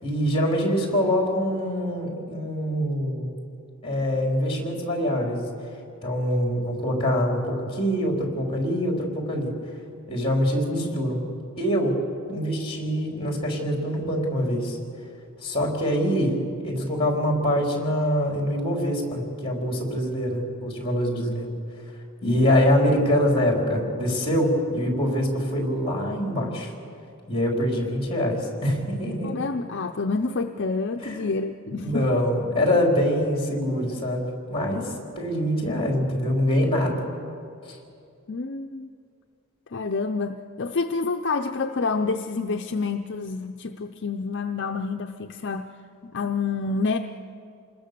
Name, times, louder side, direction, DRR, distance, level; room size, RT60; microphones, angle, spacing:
voice 1, 0.0-3.3 3.8-5.5 6.0-9.5 10.1-11.2 11.6-12.0 12.3-14.8 15.4-16.4 16.6-21.5 22.2-26.7 27.3-29.3 31.0-31.2 31.7-34.9 35.2-37.0 37.7-37.8, equal, 25° left, 0 dB, 4.0 m, -24 dB
voice 2, 29.2-32.2 38.3-38.9 39.7-45.7 46.0-47.0, left 4 dB, 50° left, 6 dB, 0.6 m, -28 dB
27.5 x 20.5 x 6.9 m, 2.5 s
head